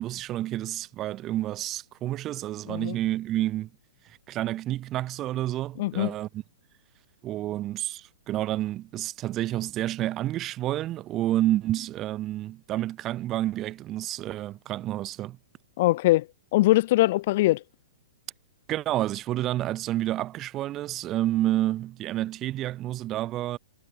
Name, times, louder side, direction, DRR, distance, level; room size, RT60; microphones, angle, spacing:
voice 1, 0.0-3.7 4.0-6.4 7.2-15.4 18.7-23.6, right 14 dB, 30° right, 2.9 m, -29 dB
voice 2, 5.8-6.1 15.8-16.3 16.5-17.6, left 17 dB, 50° left, 0.6 m, -22 dB
hypercardioid pair, 135°, 0 cm